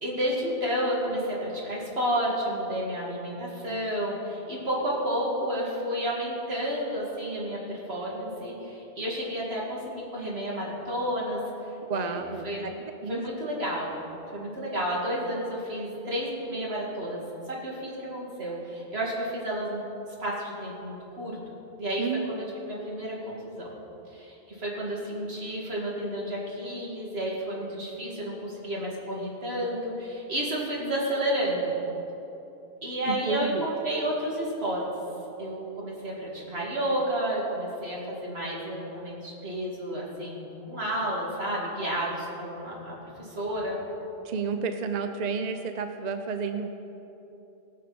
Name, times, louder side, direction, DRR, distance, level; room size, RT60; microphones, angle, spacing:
voice 1, 0.0-11.4 11.7-12.7 13.1-13.9 14.3-17.2 17.5-19.8 20.2-21.4 21.8-23.7 24.1-31.7 32.8-34.8 35.4-43.8, equal, 75° right, -4 dB, 2.8 m, -31 dB
voice 2, 11.9-12.7 13.0-13.2 22.0-22.4 33.1-33.7 44.2-46.7, right 5 dB, 50° right, 7 dB, 0.7 m, -31 dB
19.0 x 6.6 x 6.0 m, 3.0 s
omnidirectional pair, 1.1 m